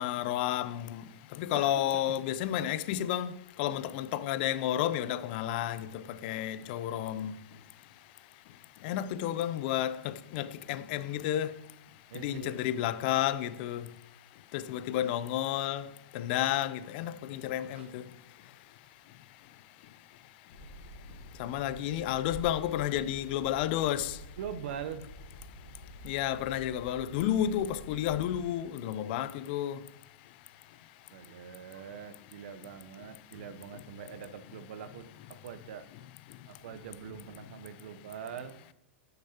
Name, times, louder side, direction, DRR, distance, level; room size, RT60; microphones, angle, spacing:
voice 1, 0.0-7.4 8.8-11.6 12.1-13.9 14.5-18.1 21.4-24.2 26.0-29.8, left 11 dB, 50° left, 0.5 m, -31 dB
voice 2, 1.5-2.0 8.8-9.0 12.1-12.6 17.7-17.9 24.4-25.0 31.1-35.9 36.5-38.6, right 7 dB, 65° right, 0.8 m, -43 dB
sound 1, 20.5-28.4, equal, 75° left, 1.4 m, -48 dB
11.0 x 6.7 x 2.9 m
hypercardioid pair, 105°, 7 cm